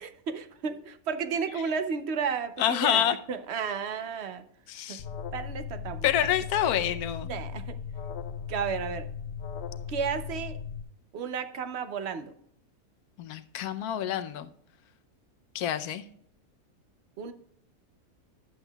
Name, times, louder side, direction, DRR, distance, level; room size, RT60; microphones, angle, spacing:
voice 1, 0.0-4.4 4.9-5.0 5.3-6.3 7.3-7.8 8.5-9.1 9.9-10.6 11.1-12.3 17.2-17.3, right 6 dB, 60° right, 10 dB, 0.7 m, -33 dB
voice 2, 2.6-3.2 4.7-5.0 6.0-7.3 13.2-14.5 15.5-16.0, left 10 dB, 80° left, 10 dB, 1.1 m, -27 dB
Alarm, 5.0-10.8, left 6 dB, 65° left, 0.7 m, -37 dB
10.5 x 8.0 x 2.2 m, 0.69 s
omnidirectional pair, 1.6 m